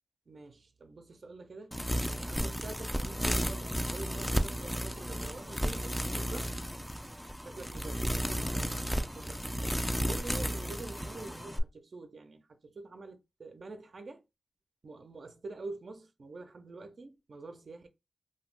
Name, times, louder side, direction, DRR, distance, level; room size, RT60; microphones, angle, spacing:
voice 1, 0.3-1.8 2.1-6.5 7.4-9.5 10.1-14.2 14.8-17.9, right 3 dB, 70° right, 0.5 m, -46 dB
sound 1, 1.7-11.6, equal, 5° left, 0.4 m, -33 dB
2.4 x 2.2 x 3.3 m
cardioid pair, 40°, 0 cm